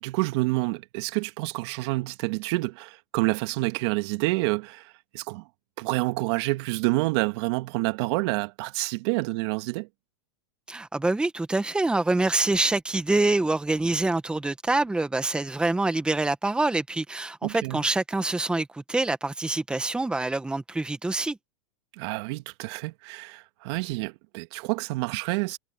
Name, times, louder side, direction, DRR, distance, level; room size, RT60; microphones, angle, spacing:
voice 1, 0.0-5.5 5.8-9.9 17.4-17.8 22.0-25.6, right 23 dB, 55° right, 1.7 m, -28 dB
voice 2, 10.7-21.4, right 2 dB, 5° right, 1.3 m, -26 dB
hypercardioid pair, 125°, 17 cm